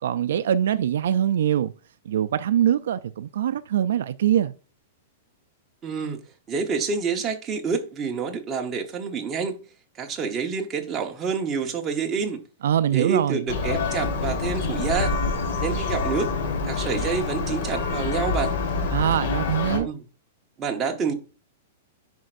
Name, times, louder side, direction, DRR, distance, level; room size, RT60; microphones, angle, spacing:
voice 1, 0.0-1.7 2.1-4.5 12.6-13.5 18.9-19.9, right 10 dB, 75° right, 0.3 m, -23 dB
voice 2, 5.8-6.2 6.5-9.6 10.0-12.4 12.9-15.1 15.6-16.3 16.7-18.5 19.7-20.0 20.6-21.1, right 5 dB, 20° right, 0.9 m, -28 dB
Church bell, 13.5-19.8, left 4 dB, 60° left, 1.4 m, -26 dB
10.5 x 4.4 x 2.5 m
supercardioid pair, 165°, 0 cm